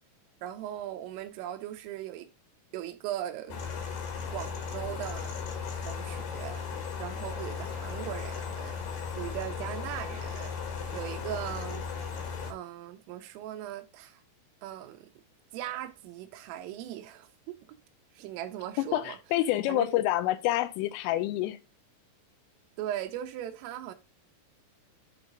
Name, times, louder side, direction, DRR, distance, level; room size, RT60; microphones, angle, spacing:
voice 1, 0.4-2.3 2.7-3.6 4.3-5.4 5.9-6.7 7.0-8.8 9.2-10.6 10.9-11.9 12.5-14.2 14.6-15.1 15.5-17.8 18.1-19.2 19.7-20.0 22.8-23.9, right 12 dB, 85° right, 3.4 m, -39 dB
sound 1, 3.5-12.5, left 6 dB, 65° left, 3.1 m, -36 dB
voice 2, 18.8-21.6, left 15 dB, 85° left, 3.1 m, -27 dB
8.6 x 4.0 x 3.6 m
omnidirectional pair, 5.7 m